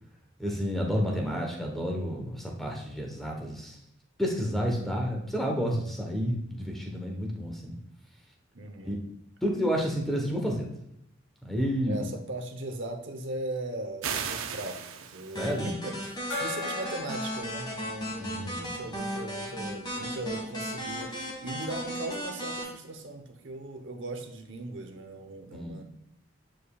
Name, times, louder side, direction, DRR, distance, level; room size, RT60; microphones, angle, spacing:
voice 1, 0.4-3.8 4.2-7.8 8.8-9.0 9.4-10.7 11.4-12.1 15.4-15.7 18.2-18.7 25.5-25.8, equal, ahead, 0 dB, 1.1 m, -30 dB
voice 2, 1.0-1.4 8.5-9.0 11.9-25.8, right 2 dB, 65° right, 5 dB, 0.9 m, -39 dB
sound 1, 14.0-15.6, right 7 dB, 80° right, 0.6 m, -35 dB
sound 2, 15.3-22.6, equal, 20° left, 1.7 m, -36 dB
Gong, 16.3-19.6, left 3 dB, 75° left, 2.4 m, -40 dB
9.0 x 5.0 x 2.4 m, 0.78 s
head